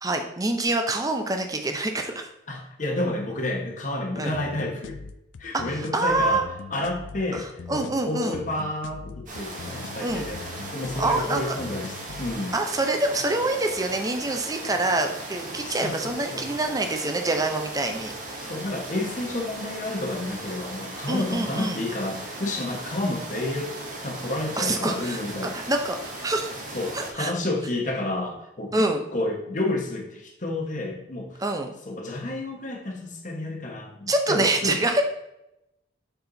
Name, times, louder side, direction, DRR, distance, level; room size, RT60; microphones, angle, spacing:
voice 1, 0.0-2.3 4.2-4.3 5.5-6.4 7.3-8.4 10.0-10.3 11.0-11.6 12.5-18.1 21.1-21.8 24.6-25.2 25.5-26.5 26.9-27.3 28.7-29.0 31.4-31.7 34.1-35.0, right 2 dB, 20° right, 5 dB, 0.6 m, -26 dB
voice 2, 2.5-5.0 5.4-10.4 10.7-12.5 15.6-16.4 18.4-23.7 24.0-25.5 26.7-31.4 31.8-34.8, left 2 dB, 40° left, 1 dB, 1.1 m, -30 dB
sound 1, 4.3-12.3, left 5 dB, 70° left, 0.4 m, -41 dB
sound 2, 9.3-27.1, right 2 dB, 40° right, 1.4 m, -37 dB
6.9 x 4.3 x 3.9 m, 0.87 s
head